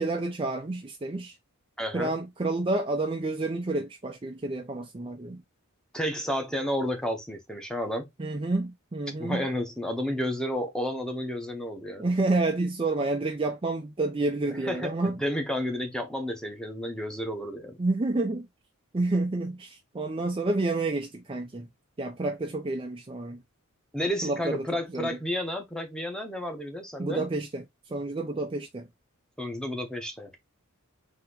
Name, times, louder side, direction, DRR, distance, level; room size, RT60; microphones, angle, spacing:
voice 1, 0.0-1.4 1.9-5.4 8.2-9.5 12.0-15.2 17.8-18.5 18.9-21.7 22.0-23.4 24.2-24.7 24.9-25.1 27.0-27.6 27.9-28.9, right 2 dB, 25° right, 0.5 m, -29 dB
voice 2, 1.8-2.1 5.9-8.1 9.2-12.0 14.6-14.9 15.2-17.8 23.9-27.2 29.4-30.5, equal, 5° left, 1.0 m, -31 dB
4.2 x 2.9 x 3.8 m
head